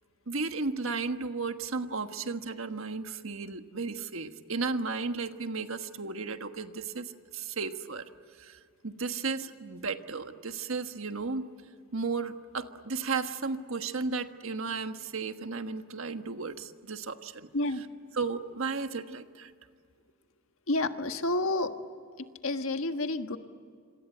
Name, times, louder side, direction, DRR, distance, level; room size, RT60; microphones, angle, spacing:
voice 1, 0.3-8.1 8.4-11.5 11.9-17.9 18.1-19.5, right 4 dB, 70° right, 8 dB, 1.4 m, -34 dB
voice 2, 20.7-21.7 22.4-23.4, left 2 dB, 70° left, 7 dB, 1.5 m, -29 dB
26.5 x 26.0 x 8.0 m, 2.2 s
head